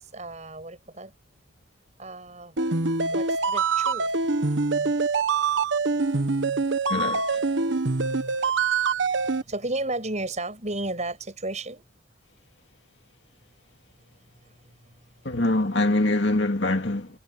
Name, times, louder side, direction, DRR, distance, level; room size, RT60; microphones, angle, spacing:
voice 1, 0.1-1.1 2.0-2.5 3.1-4.1 6.9-7.0 9.5-11.8 15.3-15.4, right 2 dB, 35° right, 7.6 m, -33 dB
sound 1, 2.6-9.4, right 4 dB, 65° right, 1.2 m, -24 dB
voice 2, 6.9-7.2 15.2-17.1, left 2 dB, 60° left, 2.4 m, -23 dB
head